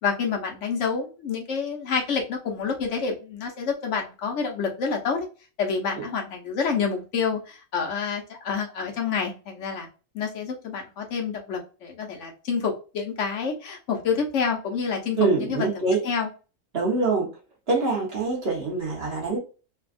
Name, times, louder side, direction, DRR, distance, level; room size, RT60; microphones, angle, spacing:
voice 1, 0.0-5.3 5.6-9.9 10.1-15.7 16.0-16.3, left 5 dB, 65° left, 2 dB, 1.1 m, -28 dB
voice 2, 15.2-16.0 16.7-17.3 17.7-19.4, right 3 dB, 50° right, -3 dB, 1.3 m, -24 dB
3.3 x 2.4 x 2.4 m, 0.34 s
omnidirectional pair, 1.4 m